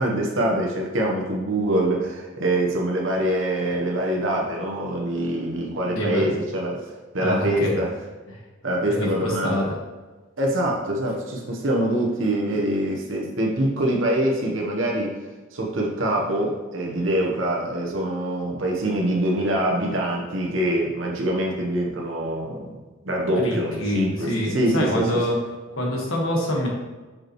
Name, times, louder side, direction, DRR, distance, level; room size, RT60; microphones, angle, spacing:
voice 1, 0.0-6.8 7.1-7.9 8.6-9.6 10.4-15.2 15.5-22.8 23.0-25.2, right 1 dB, 70° right, -1 dB, 1.0 m, -24 dB
voice 2, 5.9-6.3 7.2-7.8 8.3-8.4 8.9-9.8 23.4-25.4 25.8-26.7, equal, 85° left, -2 dB, 1.5 m, -25 dB
6.0 x 5.2 x 3.1 m, 1.3 s
head